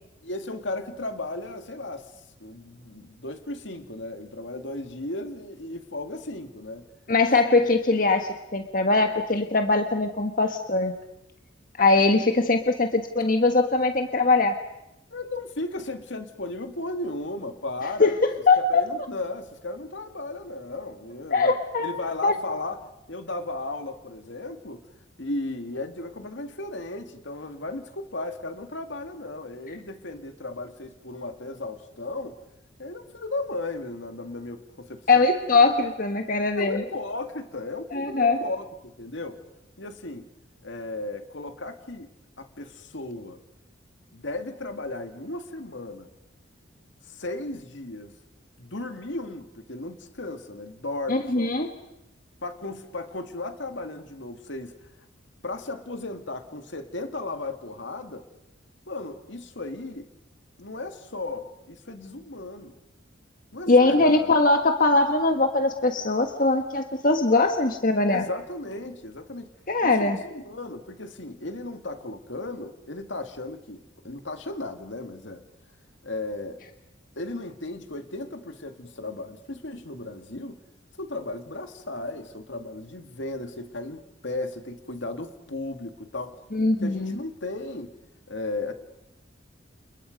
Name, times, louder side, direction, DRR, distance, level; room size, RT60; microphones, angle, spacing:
voice 1, 0.2-2.1 2.4-6.9 15.1-18.1 18.6-22.8 23.1-24.8 25.2-32.4 32.8-35.3 36.6-39.4 39.8-40.3 40.6-42.1 42.4-43.4 44.1-46.1 47.0-48.1 48.6-51.5 52.4-54.7 55.4-58.3 58.9-60.1 60.6-62.7 63.5-64.3 68.1-69.5 69.8-75.4 76.0-76.6 77.2-80.6 81.0-86.4 86.8-87.9 88.3-88.7, left 2 dB, 65° left, 2.2 m, -35 dB
voice 2, 7.1-10.9 11.8-14.6 18.0-18.8 21.3-22.0 22.2-22.4 35.1-36.8 37.9-38.4 51.1-51.7 63.7-68.2 69.7-70.2 86.5-87.2, left 3 dB, 45° left, 1.5 m, -21 dB
29.5 x 29.5 x 5.3 m
head